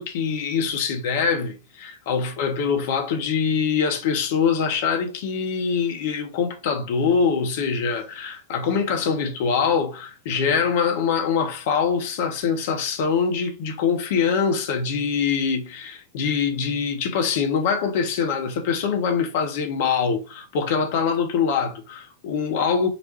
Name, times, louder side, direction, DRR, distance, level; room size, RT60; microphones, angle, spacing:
voice 1, 0.0-22.9, left 6 dB, 50° left, 0.8 m, -24 dB
4.1 x 2.1 x 4.1 m
figure-of-eight pair, 90°, 0 cm